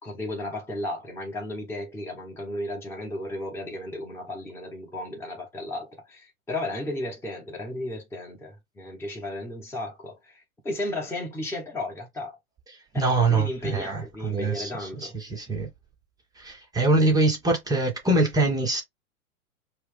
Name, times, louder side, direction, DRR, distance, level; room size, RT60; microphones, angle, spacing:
voice 1, 0.0-12.4 12.9-15.1, left 1 dB, 5° left, 1.1 m, -34 dB
voice 2, 12.9-15.7 16.4-18.8, right 2 dB, 10° right, 0.7 m, -24 dB
4.5 x 2.0 x 3.4 m
figure-of-eight pair, 100°, 42 cm